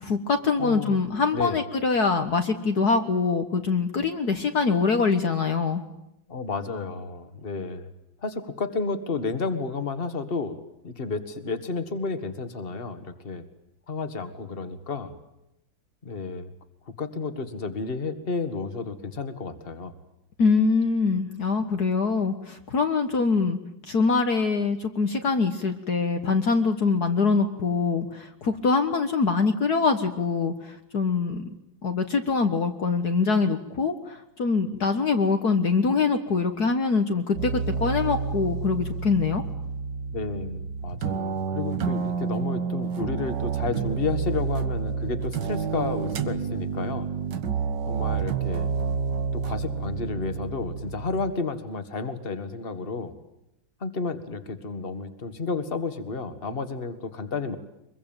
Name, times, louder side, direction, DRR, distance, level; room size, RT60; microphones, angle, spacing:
voice 1, 0.0-5.8 20.4-23.6 23.9-31.4 31.8-39.4, left 4 dB, 55° left, 6 dB, 1.9 m, -24 dB
voice 2, 0.6-1.0 1.3-1.6 6.3-7.9 8.2-10.6 10.8-13.4 13.9-15.1 16.0-16.5 17.0-19.9 40.1-47.1 47.9-48.7 49.3-53.1 53.8-57.6, left 4 dB, 30° left, 11 dB, 2.0 m, -31 dB
sound 1, 37.3-51.3, right 6 dB, 65° right, 2.0 m, -29 dB
24.5 x 23.0 x 9.0 m, 0.86 s
omnidirectional pair, 2.1 m